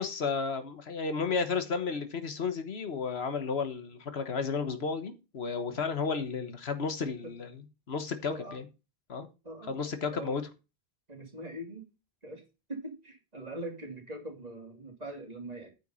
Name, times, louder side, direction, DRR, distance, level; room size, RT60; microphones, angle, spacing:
voice 1, 0.0-7.6 7.9-8.7 9.1-9.3 9.7-10.4, left 5 dB, 85° left, 1.5 m, -33 dB
voice 2, 7.0-7.3 8.3-8.6 9.4-10.4 11.1-11.9 12.2-12.4 12.7-15.7, right 1 dB, 40° right, 2.9 m, -42 dB
9.1 x 5.8 x 5.5 m
omnidirectional pair, 1.0 m